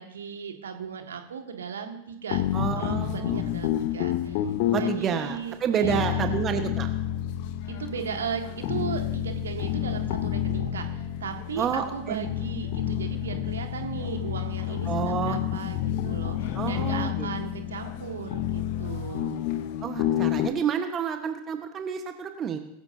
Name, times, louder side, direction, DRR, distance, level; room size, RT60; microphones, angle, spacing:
voice 1, 0.0-2.4 2.8-4.5 4.8-6.3 7.7-15.8 16.0-19.4, right 6 dB, 65° right, 5 dB, 1.9 m, -36 dB
sound 1, 2.3-20.5, left 12 dB, 45° left, 0.8 m, -29 dB
voice 2, 2.5-3.4 4.7-6.9 11.6-12.2 14.8-15.4 16.5-17.3 19.8-22.6, right 8 dB, 25° right, 6 dB, 1.4 m, -29 dB
21.5 x 14.5 x 2.8 m, 0.81 s
figure-of-eight pair, 90°, 0 cm